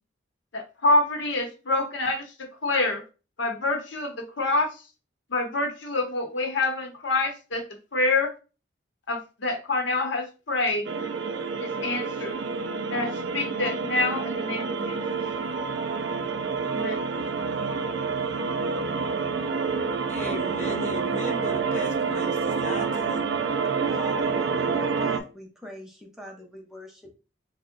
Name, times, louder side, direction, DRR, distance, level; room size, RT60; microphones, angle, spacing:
voice 1, 0.5-2.2 2.6-3.0 3.4-4.8 5.3-7.6 7.9-8.3 9.1-10.9 11.8-12.4 12.9-15.0 16.7-17.0, left 2 dB, 80° left, 0.8 m, -26 dB
sound 1, 10.8-25.2, right 5 dB, 65° right, 0.4 m, -28 dB
voice 2, 20.1-23.3, left 1 dB, 40° left, 0.6 m, -37 dB
voice 3, 23.9-27.1, left 1 dB, ahead, 0.6 m, -44 dB
3.4 x 2.1 x 3.7 m
head